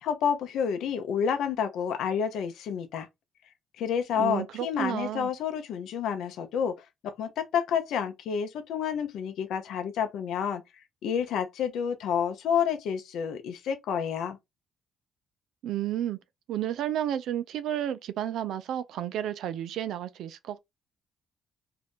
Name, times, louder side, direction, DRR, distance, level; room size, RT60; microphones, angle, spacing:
voice 1, 0.0-3.1 3.8-6.9 7.2-10.6 11.0-14.4, left 7 dB, 80° left, 0.6 m, -29 dB
voice 2, 4.2-5.3 15.6-16.2 16.5-20.6, right 11 dB, 80° right, 0.4 m, -31 dB
2.7 x 2.5 x 3.5 m
cardioid pair, 90°, 0 cm